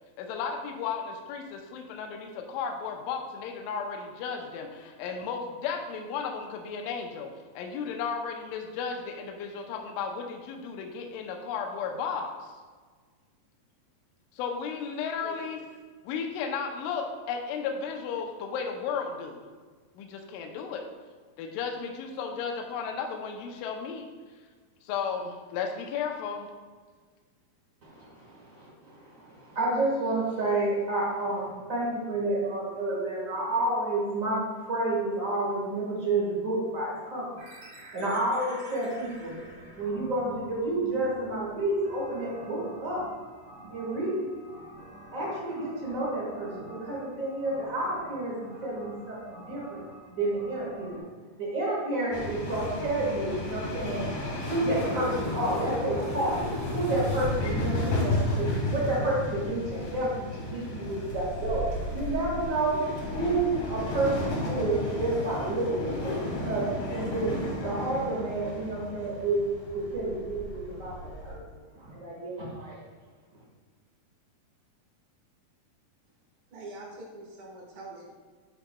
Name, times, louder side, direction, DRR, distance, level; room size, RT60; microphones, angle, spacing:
voice 1, 0.2-12.5 14.3-15.6 16.0-19.5 19.9-20.8 21.4-24.1 24.8-26.5, left 6 dB, 80° left, 2 dB, 2.3 m, -34 dB
voice 2, 27.8-37.4 37.9-39.4 39.8-43.1 43.7-44.3 45.1-49.8 50.1-51.0 51.4-54.1 54.5-56.5 56.7-67.3 67.6-69.4 69.7-71.4 71.7-72.8, right 2 dB, 55° right, -5 dB, 0.8 m, -30 dB
sound 1, 37.4-51.0, right 1 dB, 40° right, 2.3 m, -49 dB
sound 2, 52.1-71.4, left 1 dB, 55° left, 2.1 m, -33 dB
sound 3, 54.3-57.7 61.5-61.7, left 1 dB, 25° left, 1.0 m, -38 dB
voice 3, 76.5-78.1, right 2 dB, 80° right, -2 dB, 3.2 m, -44 dB
8.9 x 6.0 x 2.2 m, 1.5 s
omnidirectional pair, 4.1 m